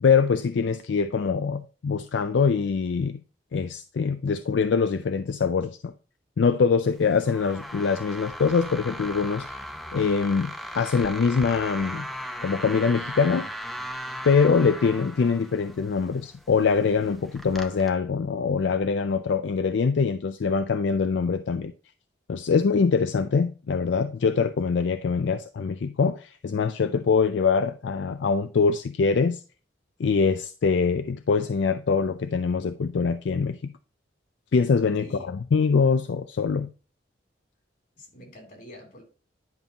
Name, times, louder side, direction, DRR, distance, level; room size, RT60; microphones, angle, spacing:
voice 1, 0.0-3.2 3.5-5.9 6.4-9.5 9.9-12.1 12.4-13.5 14.2-21.7 22.3-29.4 30.0-33.7 34.5-36.7, left 5 dB, 80° left, 0.4 m, -23 dB
sound 1, 6.9-17.9, equal, ahead, 0.7 m, -38 dB
voice 2, 35.0-35.3 38.0-39.0, equal, 55° left, 3.2 m, -46 dB
10.5 x 5.3 x 2.9 m
head